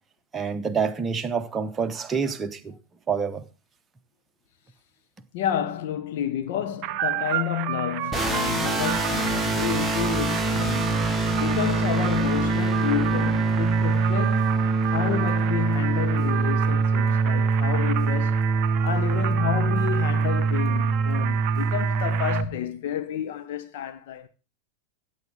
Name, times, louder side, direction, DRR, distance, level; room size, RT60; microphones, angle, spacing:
voice 1, 0.3-2.8 3.1-3.4, right 6 dB, 20° right, 0.9 m, -27 dB
voice 2, 5.3-11.1 11.4-14.6 14.8-18.4 18.8-24.3, left 10 dB, 50° left, 1.0 m, -30 dB
sound 1, 6.8-22.4, right 12 dB, 40° right, 0.6 m, -32 dB
sound 2, 8.1-22.4, right 4 dB, ahead, 1.5 m, -24 dB
15.0 x 8.6 x 3.7 m
figure-of-eight pair, 90°, 0 cm